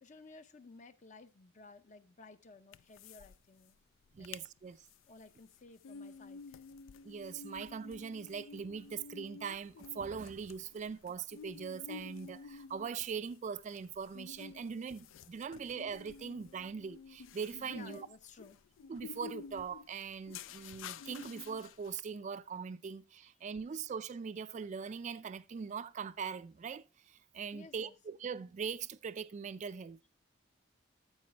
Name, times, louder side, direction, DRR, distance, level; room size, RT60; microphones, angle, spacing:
voice 1, 0.0-3.8 4.2-4.3 5.1-6.6 17.7-18.6 23.4-23.6 27.5-27.9, left 3 dB, 40° left, 0.6 m, -55 dB
sound 1, 2.7-3.3 3.6-3.7 4.1-4.5 4.9-22.0, left 6 dB, 90° left, 0.4 m, -51 dB
voice 2, 4.1-4.9 7.0-18.1 18.9-30.0, right 6 dB, 40° right, 0.3 m, -41 dB
13.0 x 4.8 x 3.3 m
head